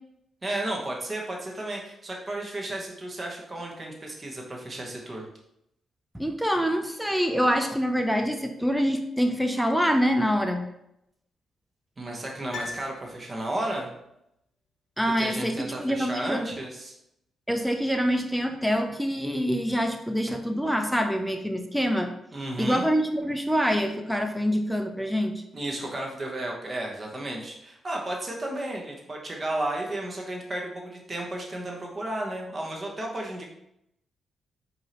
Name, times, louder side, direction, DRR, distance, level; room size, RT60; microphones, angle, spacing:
voice 1, 0.4-5.2 12.0-13.9 15.2-16.9 22.3-22.9 25.5-33.5, right 1 dB, 35° right, 0 dB, 1.0 m, -33 dB
voice 2, 6.1-10.7 15.0-16.4 17.5-22.1 22.6-25.4, equal, ahead, 5 dB, 0.4 m, -25 dB
Piano, 12.5-13.8 14.0-14.1, left 4 dB, 70° left, 0.6 m, -40 dB
4.8 x 2.7 x 2.9 m, 0.82 s
cardioid pair, 70°, 0 cm